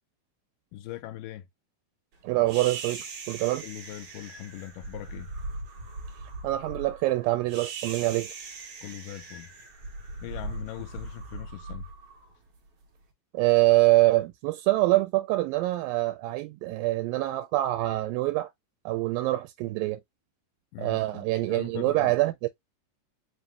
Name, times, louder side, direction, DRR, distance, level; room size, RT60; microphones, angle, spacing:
voice 1, 0.7-1.5 3.6-5.3 8.8-9.5 10.2-11.9 20.7-22.1, left 14 dB, 80° left, 2.2 m, -41 dB
voice 2, 2.2-3.6 6.4-8.3 13.3-18.5 18.9-20.0 20.8-22.5, right 18 dB, 90° right, 2.3 m, -25 dB
sound 1, 2.5-12.8, right 3 dB, 55° right, 1.8 m, -40 dB
5.1 x 2.5 x 3.3 m
omnidirectional pair, 3.9 m